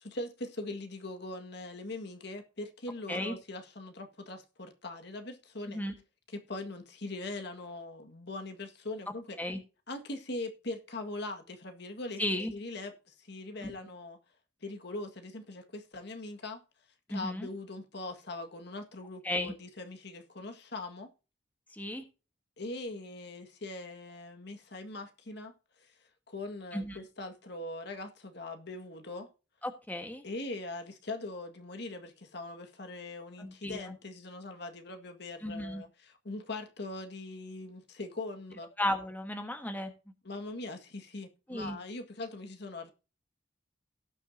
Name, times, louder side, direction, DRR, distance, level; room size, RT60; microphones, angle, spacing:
voice 1, 0.0-5.8 6.3-9.4 9.9-12.2 12.5-14.2 14.6-16.6 17.1-21.1 22.6-25.5 26.3-29.3 30.2-38.7 40.3-42.9, left 2 dB, 65° left, 1.8 m, -41 dB
voice 2, 12.2-12.5 13.6-13.7 17.1-17.5 19.2-19.5 21.7-22.0 26.7-27.0 29.6-30.2 33.4-33.9 35.4-35.8 38.8-39.9 41.5-41.8, left 1 dB, 10° left, 1.3 m, -34 dB
18.0 x 6.5 x 2.7 m
head